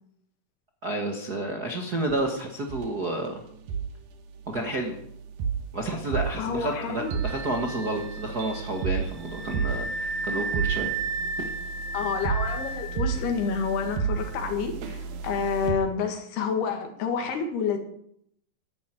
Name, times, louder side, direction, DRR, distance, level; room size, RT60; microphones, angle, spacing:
voice 1, 0.8-3.4 4.5-5.0 5.7-10.9, right 1 dB, 55° right, 2 dB, 1.0 m, -30 dB
sound 1, 2.1-2.4 2.7-2.9 3.7-3.9 4.5-15.7, right 6 dB, 70° right, 2.8 m, -32 dB
voice 2, 6.4-7.2 11.9-17.8, left 6 dB, 85° left, 5 dB, 4.0 m, -29 dB
Wind instrument woodwind instrument, 7.0-14.4, right 3 dB, 30° right, 3.0 m, -35 dB
11.5 x 10.5 x 8.9 m, 0.71 s
omnidirectional pair, 4.5 m